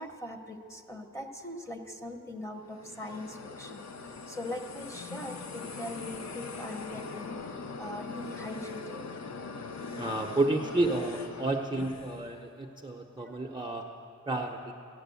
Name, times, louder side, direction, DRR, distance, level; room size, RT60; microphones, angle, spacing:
voice 1, 0.0-3.8 4.3-7.3 7.8-9.0, left 1 dB, 10° left, 4 dB, 1.0 m, -41 dB
sound 1, 2.6-12.3, left 4 dB, 65° left, 0.8 m, -41 dB
voice 2, 9.9-13.8 14.3-14.7, right 2 dB, 15° right, 3 dB, 0.7 m, -31 dB
14.5 x 9.9 x 7.0 m, 2.4 s
wide cardioid pair, 110°, 30 cm